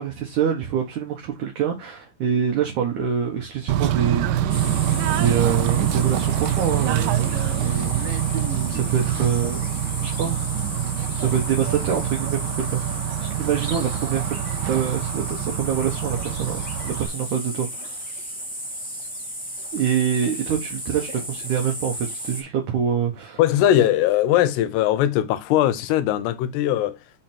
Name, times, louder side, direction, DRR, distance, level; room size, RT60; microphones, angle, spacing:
voice 1, 0.0-8.0 8.7-9.7 10.0-10.4 11.2-18.0 19.7-23.4, right 8 dB, 65° right, 2.1 m, -26 dB
Bird / Train, 3.7-17.1, right 11 dB, 80° right, 1.9 m, -25 dB
sound 1, 4.5-22.4, equal, 5° left, 0.6 m, -34 dB
voice 2, 23.4-27.0, left 12 dB, 90° left, 2.8 m, -20 dB
6.4 x 3.9 x 4.3 m
omnidirectional pair, 4.7 m